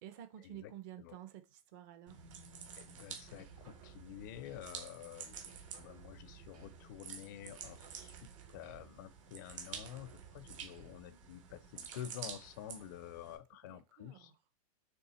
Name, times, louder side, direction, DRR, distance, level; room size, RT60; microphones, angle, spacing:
voice 1, 0.0-2.2 13.7-14.3, right 11 dB, 30° right, 0.7 m, -51 dB
sound 1, 2.1-13.4, right 7 dB, 55° right, 1.5 m, -50 dB
voice 2, 2.8-5.5 5.8-14.3, left 11 dB, 30° left, 0.4 m, -49 dB
sound 2, 3.2-4.9 5.3-7.1 7.4-9.1 9.5-11.2, right 7 dB, 85° right, 3.8 m, -58 dB
6.7 x 3.3 x 4.2 m
supercardioid pair, 170°, 19 cm